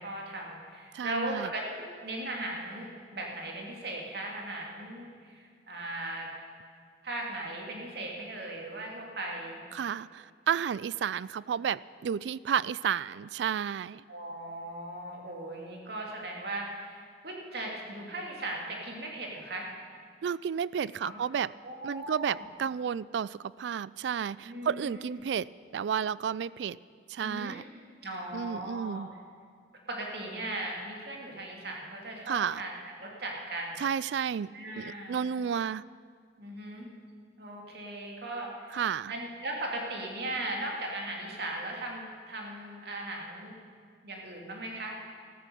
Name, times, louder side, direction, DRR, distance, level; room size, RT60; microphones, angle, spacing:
voice 1, 0.0-6.3 7.0-9.6 14.1-19.7 21.0-21.2 21.6-22.5 24.4-25.2 27.2-27.6 28.0-29.0 29.9-32.7 33.0-33.8 34.5-35.3 36.4-36.9 37.4-38.8 39.1-43.6 44.0-45.0, right 1 dB, 60° right, -1 dB, 2.7 m, -38 dB
voice 2, 0.9-1.5 9.7-14.0 20.2-21.5 21.8-26.8 27.1-27.6 28.3-29.1 32.3-32.6 33.8-34.5 34.8-35.8 38.7-39.1, right 8 dB, 80° right, 20 dB, 0.3 m, -32 dB
14.0 x 13.5 x 6.9 m, 2.1 s
head